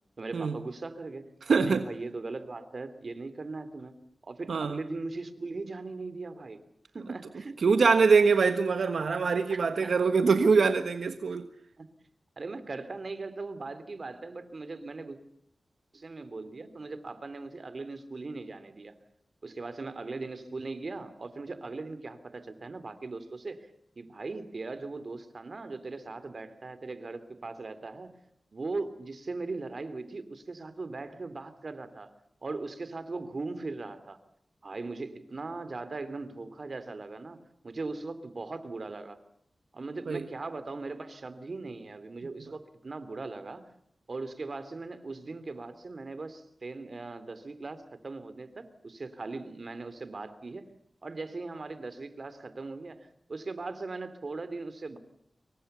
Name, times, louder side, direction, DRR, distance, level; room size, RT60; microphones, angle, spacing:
voice 1, 0.2-4.0 4.2-6.6 6.9-7.6 9.5-9.9 11.8-11.9 12.4-15.2 15.9-18.9 19.4-23.7 24.0-28.1 28.5-32.1 32.4-34.2 34.6-39.2 39.7-43.7 44.1-50.7 51.0-55.0, right 3 dB, 55° right, 3.3 m, -39 dB
voice 2, 1.4-1.8 4.5-4.8 7.6-11.5 40.1-40.3, right 5 dB, 85° right, 1.4 m, -24 dB
27.0 x 24.0 x 7.0 m
wide cardioid pair, 65°, 0 cm